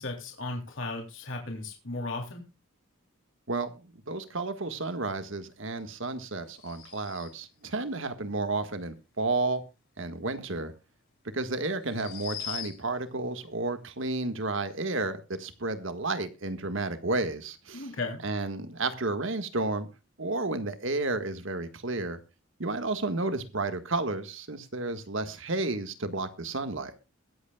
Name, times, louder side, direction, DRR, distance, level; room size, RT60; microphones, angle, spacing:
voice 1, 0.0-2.4 17.7-18.2, left 2 dB, 65° left, 1 dB, 3.3 m, -35 dB
voice 2, 3.5-9.6 10.0-10.7 11.3-17.9 18.2-19.9 20.2-22.2 22.6-26.9, right 2 dB, 65° right, 9 dB, 1.7 m, -32 dB
sound 1, 6.5-7.6 10.6-10.7 11.8-13.1, left 10 dB, 50° left, 4.6 m, -41 dB
22.0 x 8.3 x 2.3 m, 0.29 s
head